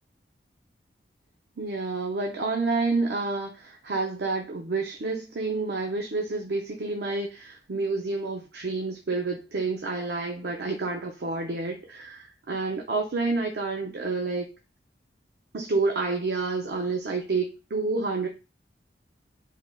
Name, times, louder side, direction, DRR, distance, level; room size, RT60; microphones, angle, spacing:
voice 1, 1.6-14.5 15.5-18.3, right 3 dB, 65° right, 2 dB, 0.5 m, -29 dB
3.6 x 3.3 x 2.2 m, 0.28 s
head